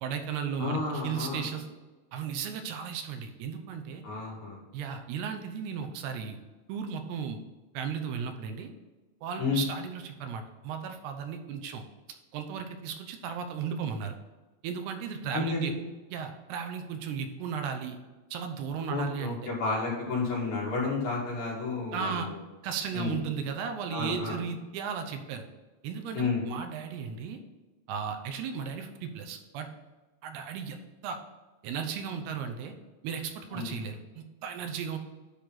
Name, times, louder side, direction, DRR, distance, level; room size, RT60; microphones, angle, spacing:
voice 1, 0.0-1.7 2.1-4.0 4.7-6.4 6.7-7.4 7.7-8.7 9.2-11.8 12.3-14.2 14.6-15.7 16.1-18.0 18.3-19.4 21.9-22.3 22.6-25.5 25.8-27.4 27.9-29.7 30.2-31.2 31.6-32.7 33.0-35.0, right 6 dB, 80° right, 6 dB, 2.7 m, -35 dB
voice 2, 0.6-1.5 4.0-4.6 9.4-9.7 15.3-15.7 18.9-22.4 22.9-23.2 23.9-24.4 26.1-26.4 33.5-33.7, left 4 dB, 60° left, -5 dB, 3.7 m, -31 dB
10.0 x 3.5 x 5.8 m, 1.2 s
omnidirectional pair, 4.7 m